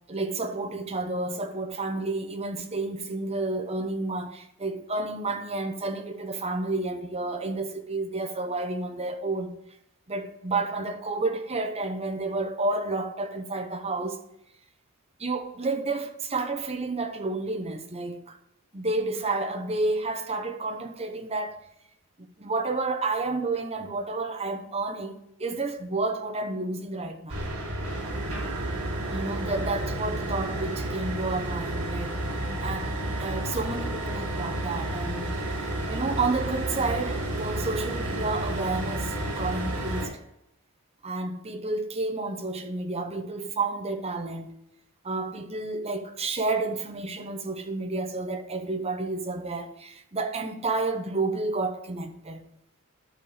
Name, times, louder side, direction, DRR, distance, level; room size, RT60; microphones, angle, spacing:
voice 1, 0.1-9.6 10.1-14.2 15.2-18.4 18.7-21.6 22.4-27.4 29.1-32.3 32.6-35.3 35.9-40.1 41.0-44.5 45.0-52.4, right 3 dB, 30° right, 0.9 m, -30 dB
sound 1, 27.3-40.1, right 1 dB, 90° right, 3.9 m, -31 dB
12.5 x 4.5 x 4.9 m
head